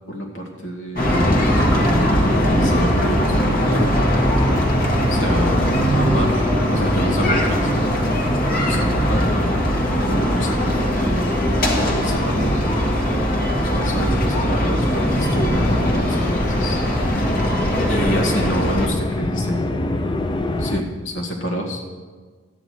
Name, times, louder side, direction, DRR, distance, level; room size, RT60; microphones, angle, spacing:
voice 1, 0.1-1.1 2.2-3.9 5.1-7.8 8.5-9.4 10.0-11.5 11.8-12.6 13.6-16.8 17.9-20.3 20.6-21.9, equal, 75° left, 1 dB, 2.1 m, -28 dB
sound 1, 1.0-18.9, equal, 45° left, 1.7 m, -20 dB
sound 2, 6.0-20.8, left 2 dB, 25° left, 0.5 m, -28 dB
13.0 x 9.1 x 4.7 m, 1.5 s
head